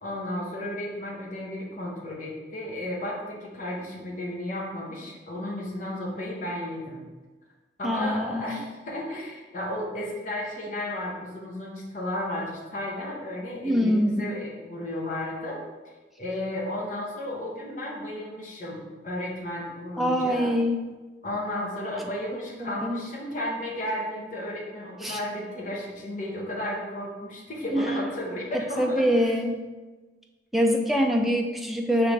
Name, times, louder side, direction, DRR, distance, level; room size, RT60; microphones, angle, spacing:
voice 1, 0.0-7.0 7.8-15.6 16.2-20.5 21.2-29.0, left 1 dB, 45° left, -3 dB, 0.8 m, -33 dB
voice 2, 7.8-8.5 13.6-14.2 20.0-20.8 22.6-23.0 25.0-25.2 27.7-28.0 28.8-29.6 30.5-32.1, equal, ahead, 2 dB, 0.3 m, -24 dB
5.1 x 3.3 x 3.2 m, 1.2 s
head